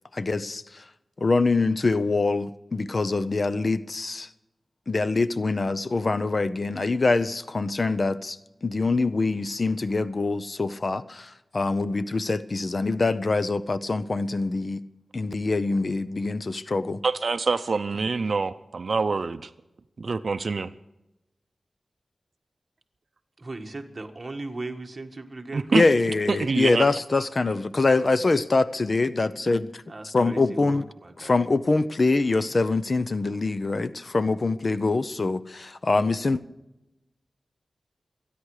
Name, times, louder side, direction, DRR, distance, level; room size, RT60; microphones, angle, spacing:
voice 1, 0.1-0.8 1.2-4.3 4.9-8.4 8.6-14.8 15.1-17.0 25.7-30.9 31.2-36.4, left 3 dB, 45° left, 14 dB, 0.7 m, -24 dB
voice 2, 17.0-19.5 20.0-20.7 25.5-25.8 26.3-26.9, right 4 dB, 65° right, 11 dB, 0.6 m, -25 dB
voice 3, 23.4-25.9 29.9-31.4, right 2 dB, 35° right, 4 dB, 1.6 m, -38 dB
26.5 x 10.0 x 4.9 m, 0.93 s
wide cardioid pair, 95°, 0 cm